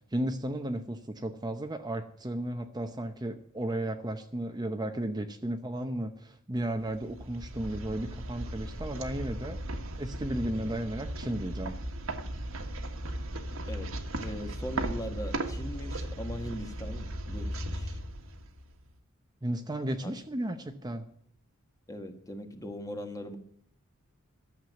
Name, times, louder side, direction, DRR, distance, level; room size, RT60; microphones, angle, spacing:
voice 1, 0.1-9.6 10.0-11.8 19.4-21.1, right 1 dB, 20° right, 6 dB, 0.8 m, -34 dB
sound 1, 6.8-18.9, right 1 dB, 75° right, 1.6 m, -37 dB
voice 2, 14.2-18.0 20.0-20.2 21.9-23.4, equal, 15° left, 7 dB, 1.4 m, -40 dB
13.0 x 7.5 x 9.0 m, 0.64 s
head